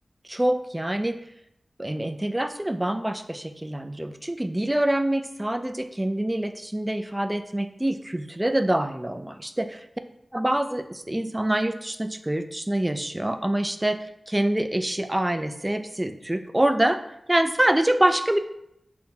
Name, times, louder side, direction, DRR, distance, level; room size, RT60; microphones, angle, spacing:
voice 1, 0.2-1.2 1.8-9.8 10.3-14.0 14.3-17.0 17.3-18.4, right 1 dB, 20° right, 8 dB, 0.3 m, -25 dB
5.5 x 2.1 x 2.8 m, 0.78 s
cardioid pair, 45°, 0 cm